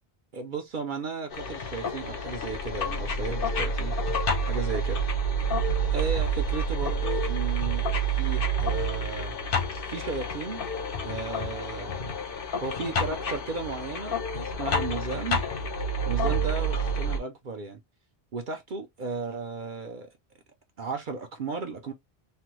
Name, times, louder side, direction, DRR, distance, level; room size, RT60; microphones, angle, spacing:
voice 1, 0.3-3.9 4.5-5.0 5.9-9.4 9.9-10.6 11.0-12.0 12.6-15.4 16.1-17.8 18.3-20.1 20.8-21.9, right 4 dB, 55° right, 0.7 m, -35 dB
sound 1, 1.3-17.2, right 2 dB, 65° left, 1.0 m, -28 dB
3.3 x 2.1 x 3.0 m
omnidirectional pair, 1.0 m